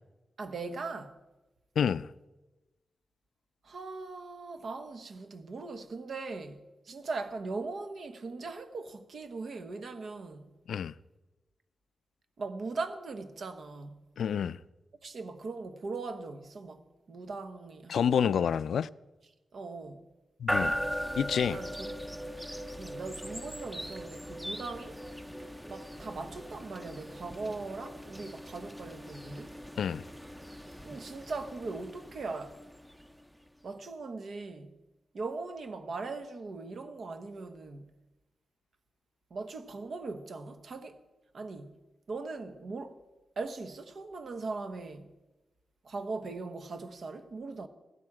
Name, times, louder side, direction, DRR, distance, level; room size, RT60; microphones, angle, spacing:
voice 1, 0.4-1.1 3.6-10.5 12.4-14.0 15.0-18.5 19.5-20.0 21.5-21.9 22.8-25.0 25.7-29.6 30.8-32.6 33.6-34.7 35.1-37.8 39.3-41.0 41.3-41.7 42.1-43.0 43.4-45.1 45.8-47.7, right 3 dB, 65° right, 1.1 m, -40 dB
voice 2, 1.8-2.1 10.7-10.9 14.2-14.6 17.9-18.9 20.4-20.8 21.2-21.6 29.8-30.0, left 8 dB, 90° left, 0.3 m, -28 dB
sound 1, 20.5-33.5, equal, 5° right, 0.6 m, -39 dB
15.5 x 12.0 x 4.9 m
wide cardioid pair, 95°, 0 cm